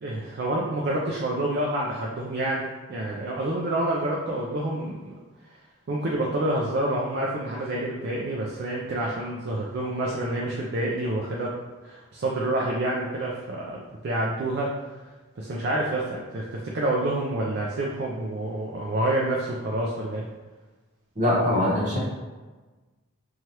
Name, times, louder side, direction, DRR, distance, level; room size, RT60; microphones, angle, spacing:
voice 1, 0.0-2.6 2.9-5.1 5.9-11.5 11.8-14.7 15.4-20.2, right 1 dB, 50° right, -4 dB, 0.3 m, -28 dB
voice 2, 21.2-22.0, left 1 dB, 35° right, -6 dB, 0.8 m, -22 dB
3.1 x 2.3 x 2.8 m, 1.3 s
head